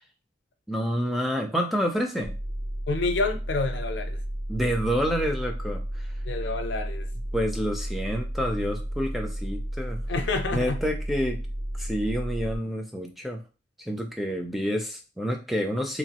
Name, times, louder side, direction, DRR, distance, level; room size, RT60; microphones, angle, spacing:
voice 1, 0.7-2.4 4.5-6.1 7.3-10.0 10.5-11.4 11.8-13.4 13.8-16.0, equal, ahead, 1 dB, 0.4 m, -28 dB
sound 1, 2.2-12.6, right 1 dB, 60° right, 0.7 m, -32 dB
voice 2, 2.9-4.2 6.2-7.1 10.1-10.8, left 3 dB, 65° left, 7 dB, 0.5 m, -28 dB
3.0 x 2.3 x 2.8 m, 0.31 s
head